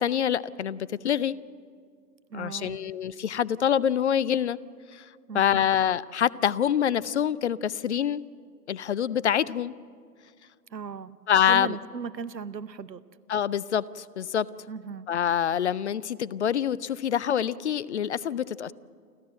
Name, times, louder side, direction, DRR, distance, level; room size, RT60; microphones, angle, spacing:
voice 1, 0.0-1.3 2.3-4.6 4.9-5.0 5.3-8.2 8.7-9.7 11.3-11.7 13.3-14.5 15.1-18.7, left 9 dB, 45° left, 21 dB, 0.5 m, -26 dB
voice 2, 2.3-2.9 5.3-5.7 10.7-11.2 11.5-13.0 14.7-15.1, right 6 dB, 85° right, 16 dB, 1.0 m, -37 dB
29.0 x 13.5 x 7.7 m, 2.2 s
figure-of-eight pair, 125°, 49 cm